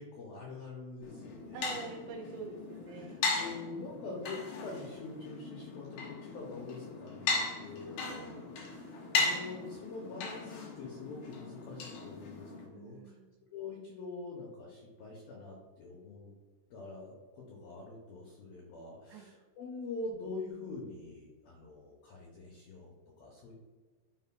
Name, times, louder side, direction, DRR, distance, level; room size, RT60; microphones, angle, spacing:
voice 1, 0.0-1.6 2.9-13.2 13.5-16.3 16.7-23.6, left 3 dB, 90° left, -2 dB, 2.1 m, -45 dB
sound 1, 1.0-12.7, left 3 dB, 70° left, 2.3 m, -37 dB
voice 2, 1.5-3.1 7.9-8.5 12.7-13.3 19.1-19.3, right 5 dB, 75° right, 0 dB, 3.1 m, -45 dB
11.5 x 4.7 x 2.2 m, 1.4 s
omnidirectional pair, 5.5 m